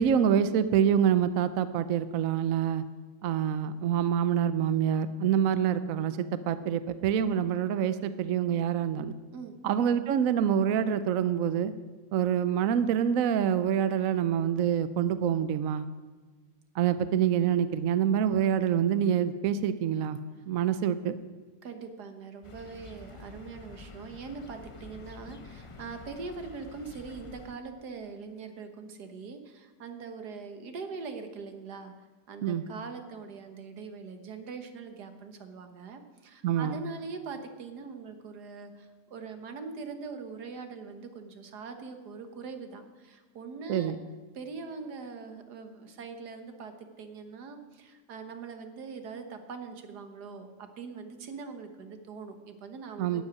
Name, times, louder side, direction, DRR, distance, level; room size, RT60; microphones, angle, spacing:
voice 1, 0.0-2.8 3.2-9.1 9.6-11.7 12.1-15.9 16.8-20.2 20.5-21.2 32.4-32.6 36.4-36.8 43.7-44.0 53.0-53.2, right 9 dB, 65° right, 13 dB, 1.0 m, -26 dB
voice 2, 21.6-31.9 32.3-43.9 44.3-53.2, right 4 dB, 85° right, 7 dB, 1.8 m, -42 dB
sound 1, 22.4-27.6, left 3 dB, 45° left, 0.4 m, -48 dB
12.0 x 7.9 x 9.5 m, 1.4 s
omnidirectional pair, 1.7 m